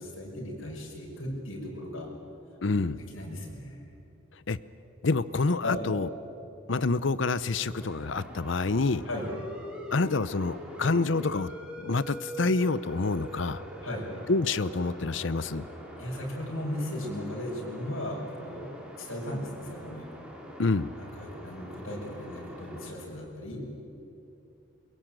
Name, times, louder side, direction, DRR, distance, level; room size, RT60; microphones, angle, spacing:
voice 1, 0.0-2.1 2.7-3.8 5.6-5.9 9.0-9.4 13.8-14.1 16.0-20.1 21.0-23.7, left 1 dB, 90° left, -1 dB, 5.7 m, -36 dB
voice 2, 2.6-3.0 4.5-4.6 5.0-6.1 6.7-9.0 9.9-11.5 11.8-13.6 14.3-15.7 20.6-20.9, left 3 dB, 65° left, 17 dB, 0.7 m, -27 dB
sound 1, 7.7-22.9, equal, 5° right, 3.5 m, -44 dB
22.5 x 22.0 x 9.0 m, 2.9 s
head